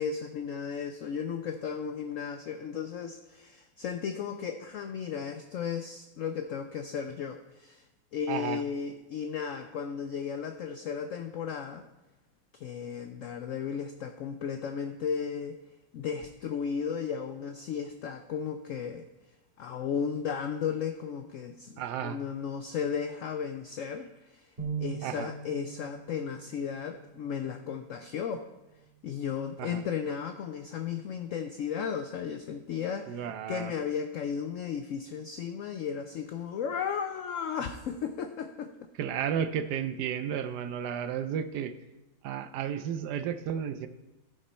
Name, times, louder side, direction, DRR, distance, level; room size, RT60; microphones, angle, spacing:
voice 1, 0.0-7.8 8.1-11.8 12.5-15.6 15.9-19.0 19.6-24.5 24.8-28.5 29.0-33.2 33.5-38.7, left 7 dB, 80° left, 7 dB, 0.7 m, -35 dB
voice 2, 8.3-8.6 21.8-22.2 25.0-25.3 29.6-29.8 33.1-33.7 39.0-41.7 42.2-43.9, right 8 dB, 75° right, 11 dB, 1.1 m, -33 dB
sound 1, 24.6-30.8, right 7 dB, 35° right, 2.1 m, -43 dB
14.5 x 5.3 x 4.2 m, 1.0 s
omnidirectional pair, 2.0 m